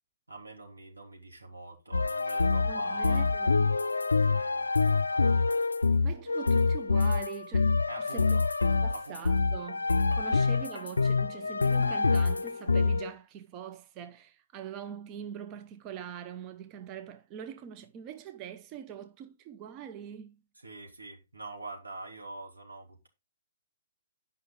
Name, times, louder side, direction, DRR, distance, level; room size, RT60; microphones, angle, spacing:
voice 1, 0.3-3.3 4.2-5.4 7.9-8.5 8.9-9.2 20.6-23.1, right 3 dB, 85° right, 3.0 m, -45 dB
sound 1, 1.9-13.1, left 4 dB, 80° left, 0.4 m, -26 dB
voice 2, 2.6-3.7 6.0-8.4 8.8-20.4, right 8 dB, 30° right, 0.6 m, -43 dB
9.3 x 5.5 x 4.0 m
figure-of-eight pair, 125°, 0 cm